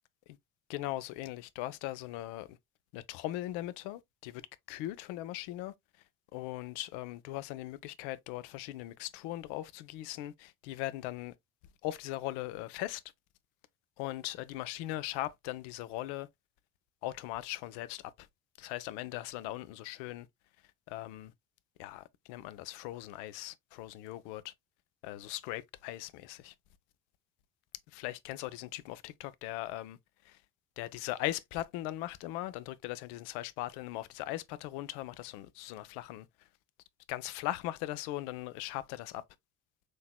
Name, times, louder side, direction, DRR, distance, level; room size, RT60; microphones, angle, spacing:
voice 1, 0.7-2.6 2.9-4.4 4.7-5.7 6.3-11.3 11.8-13.0 14.0-16.3 17.0-18.3 18.6-20.3 20.9-21.3 21.8-24.5 25.0-26.5 27.9-30.0 30.2-30.4 30.8-36.3 37.1-39.2, left 15 dB, 65° left, 0.6 m, -39 dB
6.3 x 2.9 x 2.3 m
hypercardioid pair, 55°, 43 cm